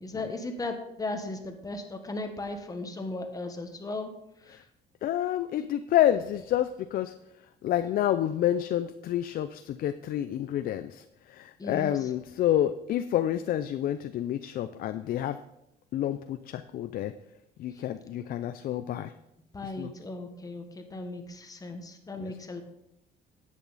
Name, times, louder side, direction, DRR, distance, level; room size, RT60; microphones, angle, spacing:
voice 1, 0.0-4.1 4.4-4.6 11.6-12.1 19.5-22.6, left 2 dB, 20° left, 6 dB, 1.4 m, -36 dB
voice 2, 5.0-7.1 7.6-15.4 15.9-17.1 17.6-19.1 19.6-19.9 22.2-22.3, left 11 dB, 60° left, 10 dB, 0.5 m, -29 dB
10.0 x 8.4 x 4.1 m, 0.82 s
cardioid pair, 110°, 17 cm